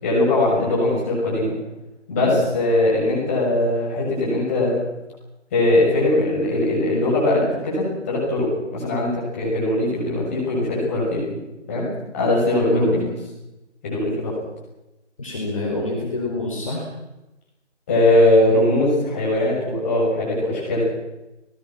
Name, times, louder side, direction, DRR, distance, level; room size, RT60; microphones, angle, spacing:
voice 1, 0.0-1.5 2.1-4.8 5.5-11.2 11.7-11.9 12.1-13.0 13.8-14.3 17.9-20.9, left 1 dB, 10° left, -6 dB, 6.6 m, -20 dB
voice 2, 12.6-13.1 15.2-16.8, left 2 dB, 25° left, -3 dB, 5.2 m, -27 dB
28.0 x 20.0 x 6.1 m, 0.98 s
figure-of-eight pair, 165°, 36 cm